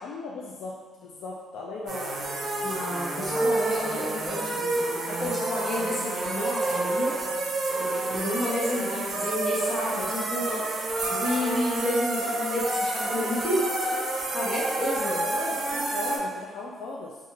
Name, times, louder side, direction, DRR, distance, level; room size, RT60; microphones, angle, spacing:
voice 1, 0.0-2.7 15.2-17.2, left 3 dB, 85° left, -4 dB, 0.3 m, -38 dB
sound 1, 1.9-16.2, right 2 dB, 60° right, 0.5 m, -29 dB
voice 2, 2.6-7.2 7.8-10.6 11.1-14.1 14.3-15.2, left 1 dB, 35° left, -6 dB, 1.0 m, -30 dB
2.6 x 2.4 x 2.8 m, 1.4 s
cardioid pair, 90°, 0 cm